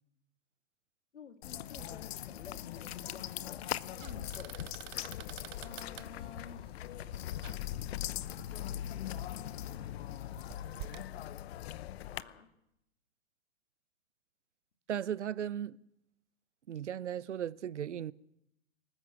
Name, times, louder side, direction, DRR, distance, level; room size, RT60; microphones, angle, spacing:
voice 1, 1.1-3.6 4.0-4.6 5.6-6.8 8.8-10.0 11.7-12.5, left 6 dB, 80° left, 3.0 m, -52 dB
sound 1, 1.4-12.2, left 13 dB, 60° left, 0.9 m, -40 dB
sound 2, 1.6-11.1, right 19 dB, 45° right, 0.9 m, -52 dB
voice 2, 14.9-15.8 16.7-18.1, right 9 dB, 85° right, 0.9 m, -36 dB
25.5 x 14.0 x 7.8 m
hypercardioid pair, 110°, 34 cm